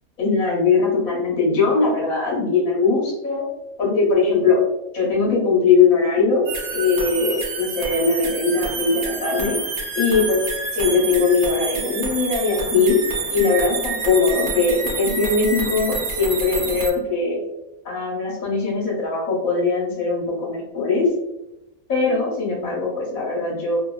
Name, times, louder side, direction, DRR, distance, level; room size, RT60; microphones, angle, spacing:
voice 1, 0.2-3.5 3.8-4.7 4.9-9.6 9.9-10.4 10.7-13.0 13.3-17.4 17.8-21.1 21.9-23.8, left 4 dB, 75° left, -4 dB, 1.4 m, -20 dB
sound 1, 6.4-16.9, right 4 dB, 60° right, 0.5 m, -28 dB
3.2 x 2.3 x 2.3 m, 0.90 s
omnidirectional pair, 1.5 m